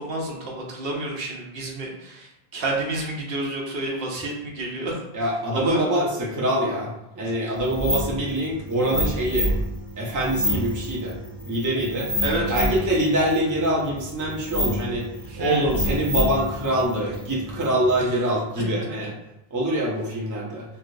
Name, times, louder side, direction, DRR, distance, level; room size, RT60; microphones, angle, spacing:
voice 1, 0.0-5.0 5.5-5.9 12.2-12.6 15.2-15.7, right 2 dB, 70° right, -2 dB, 0.9 m, -29 dB
voice 2, 5.1-9.5 10.0-11.2 11.4-12.1 12.5-15.1 15.4-19.1 19.5-20.6, right 1 dB, 25° right, -3 dB, 0.5 m, -24 dB
sound 1, 7.6-18.0, equal, 50° left, 1.2 m, -29 dB
3.1 x 2.9 x 2.5 m, 0.87 s
omnidirectional pair, 1.1 m